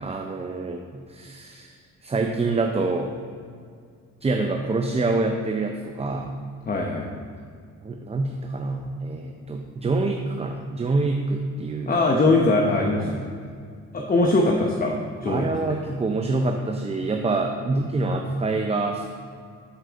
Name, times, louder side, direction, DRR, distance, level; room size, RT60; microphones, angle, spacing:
voice 1, 0.0-1.7 2.0-3.1 4.2-6.4 7.8-12.0 12.9-13.3 14.0-14.1 15.3-19.1, right 3 dB, 20° right, 3 dB, 0.6 m, -26 dB
voice 2, 6.7-7.1 11.9-13.3 13.9-14.9 15.2-15.5 18.1-18.2, left 2 dB, 30° left, 0 dB, 0.9 m, -21 dB
11.0 x 4.6 x 4.0 m, 2.2 s
cardioid pair, 90°, 30 cm